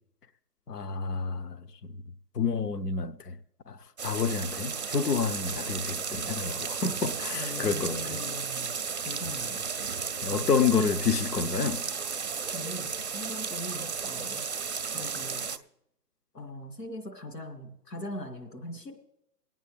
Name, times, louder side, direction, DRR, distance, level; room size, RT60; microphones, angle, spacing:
voice 1, 0.7-1.9 2.3-3.4 3.7-8.2 10.2-11.8, left 5 dB, 70° left, 0.9 m, -29 dB
sound 1, 4.0-15.6, right 5 dB, 45° right, 0.6 m, -34 dB
voice 2, 7.3-8.8 9.0-9.7 12.5-14.4 14.9-15.5 16.3-19.0, left 1 dB, 85° left, 2.9 m, -41 dB
23.5 x 9.0 x 3.4 m
hypercardioid pair, 175°, 48 cm